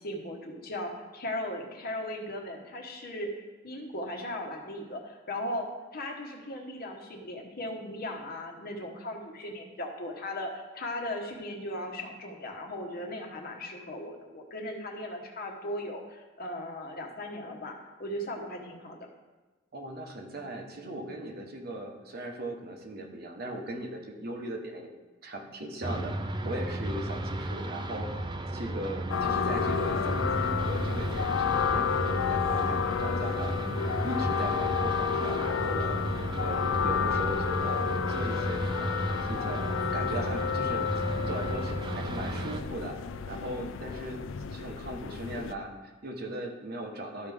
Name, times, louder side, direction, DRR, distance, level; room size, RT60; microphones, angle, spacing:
voice 1, 0.0-3.3 3.6-17.7 18.0-19.0, left 1 dB, 50° left, 2 dB, 1.1 m, -37 dB
voice 2, 19.7-24.9 25.2-28.3 28.5-33.5 34.0-36.0 36.3-43.0 43.3-44.2 44.5-47.3, right 1 dB, 55° right, 2 dB, 1.0 m, -38 dB
sound 1, 25.8-42.6, right 1 dB, 25° right, 0.5 m, -34 dB
sound 2, 29.1-45.5, left 7 dB, 80° left, 0.4 m, -31 dB
12.5 x 4.9 x 3.5 m, 1.2 s
head